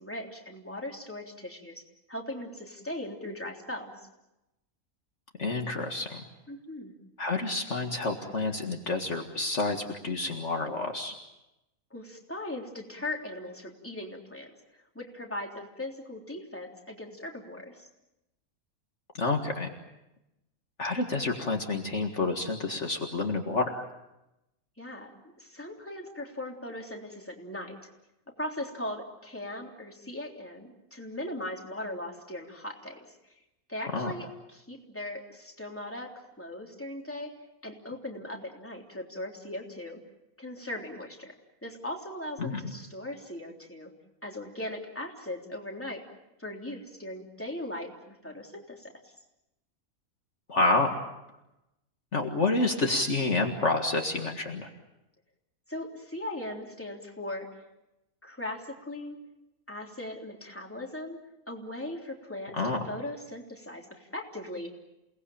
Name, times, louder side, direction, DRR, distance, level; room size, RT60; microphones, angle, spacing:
voice 1, 0.0-3.9 6.5-6.9 11.9-17.9 24.8-25.1 25.4-27.8 28.4-33.1 33.7-37.3 37.6-40.0 40.4-41.3 41.6-43.9 44.2-46.0 46.4-48.9 55.7-57.5 58.2-59.2 59.7-61.2 61.5-64.7, left 1 dB, 10° left, 0 dB, 3.5 m, -39 dB
voice 2, 5.4-6.3 7.2-11.1 19.2-19.7 20.8-23.8 33.9-34.1 42.4-42.7 50.5-51.0 52.1-54.7 62.5-62.8, left 3 dB, 50° left, 3 dB, 2.1 m, -29 dB
28.5 x 19.5 x 8.7 m, 0.93 s
omnidirectional pair, 1.5 m